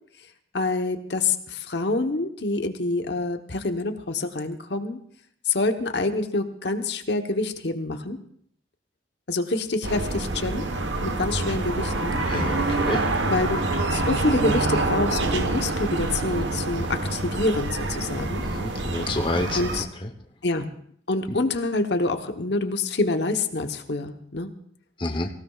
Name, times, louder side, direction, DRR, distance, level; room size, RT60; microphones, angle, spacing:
voice 1, 0.5-5.0 5.4-8.2 9.3-10.6 11.0-12.2 12.6-12.8 13.3-13.6 13.9-18.4 19.5-19.9 20.4-20.7 21.1-24.5, left 2 dB, 60° left, 6 dB, 1.0 m, -26 dB
sound 1, 9.8-19.8, right 2 dB, 70° right, 1.2 m, -26 dB
voice 2, 12.3-13.0 18.4-19.6 25.0-25.3, left 2 dB, 25° left, 4 dB, 0.9 m, -28 dB
24.5 x 16.5 x 2.4 m, 0.64 s
head